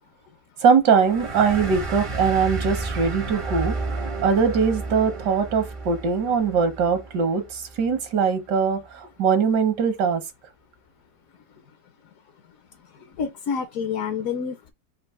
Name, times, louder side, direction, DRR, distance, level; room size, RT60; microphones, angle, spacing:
voice 1, 0.6-3.8 4.2-10.2, right 6 dB, 75° right, 1.5 m, -21 dB
sound 1, 1.0-8.1, right 3 dB, 40° right, 0.4 m, -32 dB
voice 2, 13.2-14.7, left 6 dB, 65° left, 0.9 m, -28 dB
4.4 x 2.4 x 4.6 m
omnidirectional pair, 1.9 m